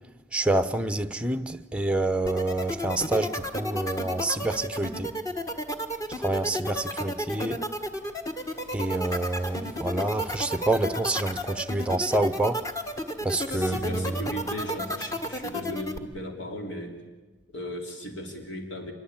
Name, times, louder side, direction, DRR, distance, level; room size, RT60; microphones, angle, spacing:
voice 1, 0.3-5.1 6.1-7.6 8.7-12.6 13.2-14.2, right 2 dB, 5° right, 0.8 m, -27 dB
sound 1, 2.3-16.0, equal, 15° left, 1.4 m, -32 dB
sound 2, 8.4-14.0, left 2 dB, 40° left, 4.2 m, -54 dB
voice 2, 13.2-17.0 17.5-18.9, equal, 70° left, 3.2 m, -36 dB
25.5 x 22.0 x 8.8 m
head